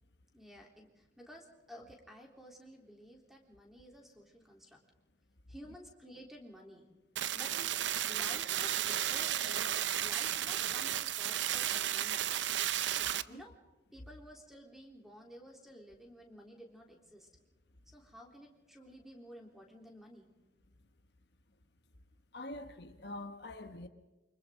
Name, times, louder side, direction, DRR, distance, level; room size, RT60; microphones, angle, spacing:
voice 1, 0.3-4.8 5.5-6.9 7.3-7.5 8.1-12.2 13.3-13.5 13.9-17.3 17.9-20.3, equal, ahead, 3.6 m, -53 dB
sound 1, 7.2-13.2, right 11 dB, 75° right, 0.7 m, -33 dB
voice 2, 22.3-23.9, left 1 dB, 60° left, 1.3 m, -45 dB
28.5 x 25.5 x 3.8 m
head